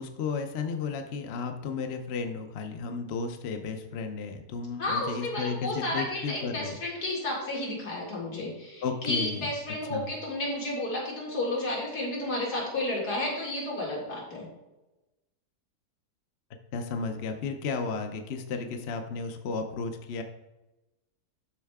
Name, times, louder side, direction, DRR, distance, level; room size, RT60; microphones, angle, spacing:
voice 1, 0.0-6.8 8.8-9.5 9.9-10.1 16.7-20.2, left 5 dB, 55° left, 5 dB, 0.8 m, -33 dB
voice 2, 4.8-14.5, left 1 dB, 85° left, -3 dB, 2.7 m, -32 dB
12.0 x 4.4 x 3.5 m, 0.99 s
omnidirectional pair, 1.7 m